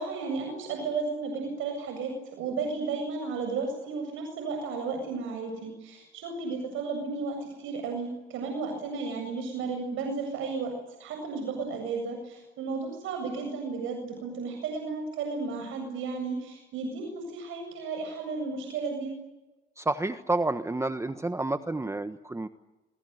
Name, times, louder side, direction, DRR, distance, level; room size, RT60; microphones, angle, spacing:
voice 1, 0.0-10.7 11.0-19.1, right 4 dB, 90° right, 3 dB, 7.7 m, -33 dB
voice 2, 19.8-22.5, right 2 dB, 15° right, 10 dB, 1.3 m, -29 dB
27.5 x 25.0 x 8.2 m, 1.1 s
cardioid pair, 90°, 20 cm